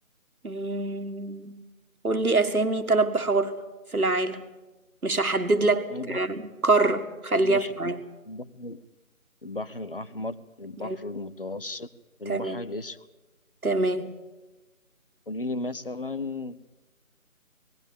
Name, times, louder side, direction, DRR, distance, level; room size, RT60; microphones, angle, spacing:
voice 1, 0.4-1.6 2.0-3.6 3.9-4.5 5.0-8.0 10.8-11.0 12.3-12.6 13.6-14.2, right 2 dB, 80° right, 8 dB, 1.8 m, -25 dB
voice 2, 5.9-6.5 7.4-7.9 8.3-8.8 9.4-11.9 12.2-13.0 15.3-16.6, left 2 dB, 40° left, 14 dB, 0.8 m, -35 dB
20.0 x 15.5 x 8.6 m, 1.1 s
figure-of-eight pair, 160°, 42 cm